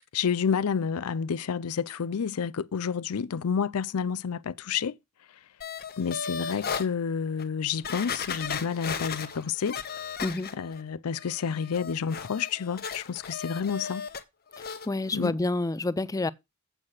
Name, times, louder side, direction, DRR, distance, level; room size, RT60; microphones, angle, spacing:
voice 1, 0.1-5.0 6.0-9.8 10.5-14.1 15.1-15.4, left 6 dB, 75° left, 0.5 m, -29 dB
sound 1, 5.6-6.9 7.4-7.5 7.8-10.8 11.1-14.2 14.5-14.9 15.2-15.3, left 6 dB, 45° left, 1.0 m, -36 dB
voice 2, 10.2-10.5 14.6-16.3, left 2 dB, 15° left, 0.4 m, -29 dB
8.0 x 5.8 x 6.3 m
head